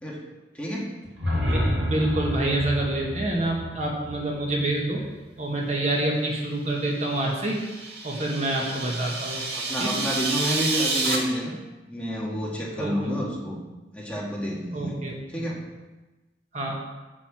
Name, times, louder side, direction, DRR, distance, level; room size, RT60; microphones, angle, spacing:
voice 1, 0.5-0.9 9.5-11.5 11.9-13.6 13.9-15.0 15.3-15.6, equal, 5° left, -4 dB, 1.8 m, -29 dB
sound 1, 1.0-5.1, left 1 dB, 85° right, 2.8 m, -29 dB
voice 2, 1.3-5.1 5.4-7.6 8.0-9.4 9.8-10.0 12.8-13.2 14.7-15.2 16.5-16.8, right 1 dB, 40° right, -1 dB, 1.7 m, -27 dB
sound 2, 7.0-11.2, right 3 dB, 60° right, 2.0 m, -30 dB
7.5 x 6.8 x 7.6 m, 1.1 s
head